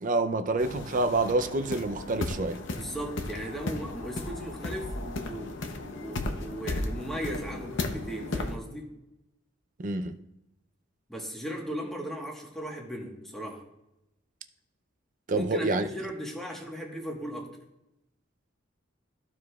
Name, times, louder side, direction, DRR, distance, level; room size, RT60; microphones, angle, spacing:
voice 1, 0.0-2.6 9.8-10.2 15.3-15.8, right 2 dB, 40° right, 9 dB, 0.5 m, -27 dB
sound 1, 0.6-8.5, left 2 dB, 65° left, 0.8 m, -35 dB
voice 2, 2.7-8.9 11.1-13.6 15.3-17.5, equal, ahead, -1 dB, 1.3 m, -37 dB
14.0 x 4.8 x 2.3 m, 0.88 s
head